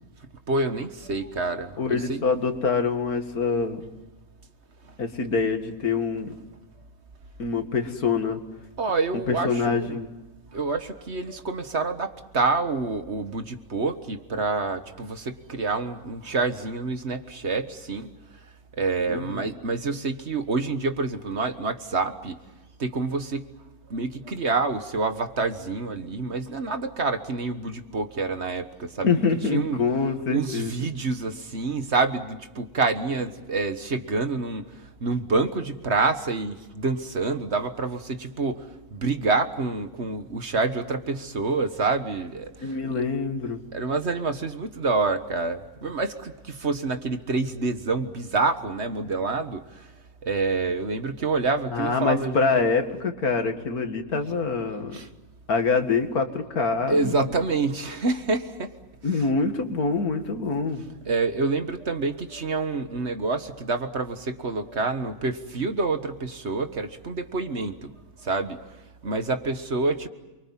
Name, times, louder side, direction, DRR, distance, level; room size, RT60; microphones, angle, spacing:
voice 1, 0.5-2.2 8.8-10.0 10.5-18.1 18.8-22.4 22.8-23.5 23.9-29.1 29.5-29.8 30.3-34.7 35.0-43.1 43.7-49.9 50.2-52.5 54.9-55.1 56.9-58.7 61.1-67.9 68.2-68.7 69.0-70.1, right 3 dB, 50° right, 8 dB, 1.7 m, -27 dB
voice 2, 1.8-3.8 5.0-6.3 7.4-8.4 9.3-10.1 19.1-19.5 29.0-30.7 42.6-43.6 51.7-55.0 55.5-57.3 59.0-60.8, left 4 dB, 90° left, 6 dB, 2.5 m, -25 dB
28.5 x 24.0 x 7.4 m, 1.1 s
omnidirectional pair, 1.5 m